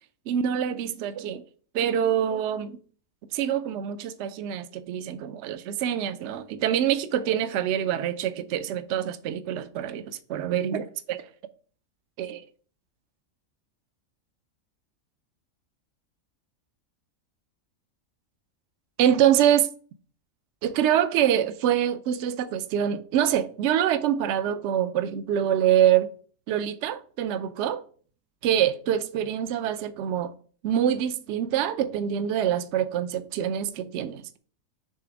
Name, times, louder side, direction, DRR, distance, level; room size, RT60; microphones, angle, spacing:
voice 1, 0.3-1.4 1.7-2.8 3.3-11.3 12.2-12.5 19.0-19.7 20.6-26.1 26.5-27.8 28.4-30.3 30.6-34.4, right 10 dB, 65° right, 0.8 m, -25 dB
6.6 x 3.4 x 5.0 m
omnidirectional pair, 1.4 m